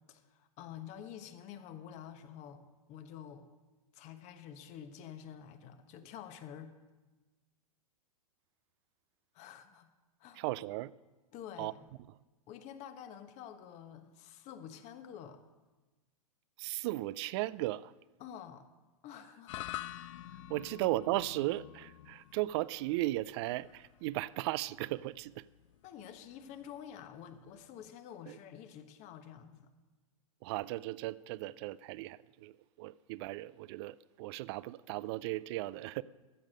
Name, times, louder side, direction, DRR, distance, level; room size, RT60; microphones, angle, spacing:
voice 1, 0.1-2.6 2.9-3.5 3.9-6.7 9.3-9.9 10.2-10.4 11.3-11.9 12.5-15.4 18.2-18.7 19.0-19.7 20.6-20.7 25.8-29.7, left 9 dB, 40° left, 1.1 m, -49 dB
voice 2, 10.4-10.9 11.6-11.7 16.6-17.9 20.5-25.4 30.4-36.0, right 17 dB, 45° right, 0.4 m, -36 dB
sound 1, 19.5-27.9, left 14 dB, 55° left, 0.6 m, -48 dB
14.0 x 7.3 x 6.4 m
hypercardioid pair, 110°, 19 cm